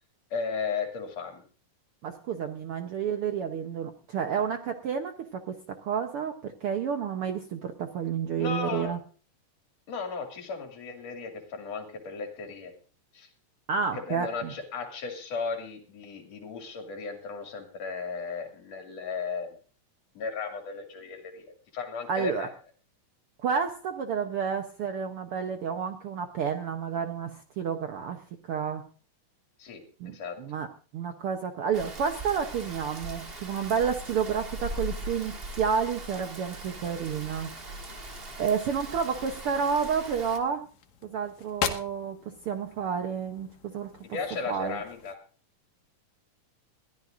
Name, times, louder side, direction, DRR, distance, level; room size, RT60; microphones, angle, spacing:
voice 1, 0.3-1.4 8.4-8.9 9.9-12.7 13.1-13.3 13.9-19.5 20.1-22.5 29.6-30.4 36.8-37.0 44.0-45.2, left 5 dB, 55° left, 4 dB, 3.4 m, -35 dB
voice 2, 2.0-9.0 13.7-14.5 22.1-22.5 23.4-28.8 30.0-30.7 30.9-37.5 38.4-40.7 41.0-43.9 44.5-44.8, right 7 dB, 85° right, 6 dB, 1.2 m, -30 dB
Rain, 31.7-40.4, right 1 dB, 35° right, 0.9 m, -40 dB
sound 1, 37.5-45.2, left 8 dB, 80° left, 2.8 m, -41 dB
21.5 x 14.5 x 2.6 m, 0.39 s
omnidirectional pair, 3.8 m